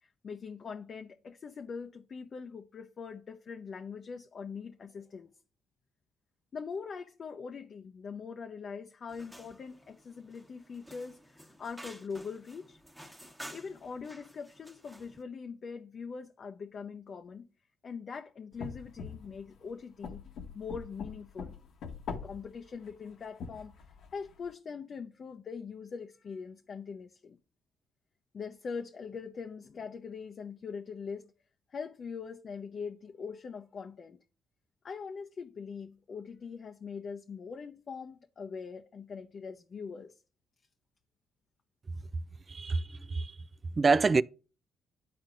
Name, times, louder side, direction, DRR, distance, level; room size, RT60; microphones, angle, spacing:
voice 1, 0.0-5.3 6.5-12.8 13.5-17.5 17.8-20.2 20.5-21.6 22.1-23.7 24.1-27.4 28.3-31.3 31.7-34.2 34.8-40.1, left 5 dB, 50° left, 0.6 m, -42 dB
sound 1, 9.1-15.2, equal, 5° right, 1.3 m, -51 dB
sound 2, 18.5-19.5 20.0-22.5 22.9-24.3, left 5 dB, 70° left, 1.0 m, -42 dB
voice 2, 42.5-43.3 43.8-44.2, right 4 dB, 35° right, 0.3 m, -26 dB
12.5 x 4.3 x 2.5 m
supercardioid pair, 60°, 0 cm